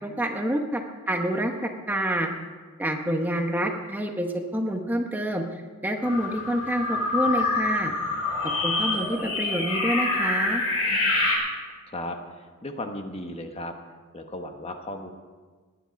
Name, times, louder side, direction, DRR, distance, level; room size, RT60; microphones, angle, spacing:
voice 1, 0.0-2.3 2.8-4.3 4.5-7.9 8.4-10.6, right 1 dB, 10° right, 3 dB, 1.0 m, -27 dB
sound 1, 6.0-11.4, left 3 dB, 85° left, 5.7 m, -26 dB
voice 2, 11.9-13.7 14.1-15.1, left 1 dB, 25° left, 5 dB, 1.1 m, -35 dB
20.0 x 10.0 x 5.2 m, 1.4 s
head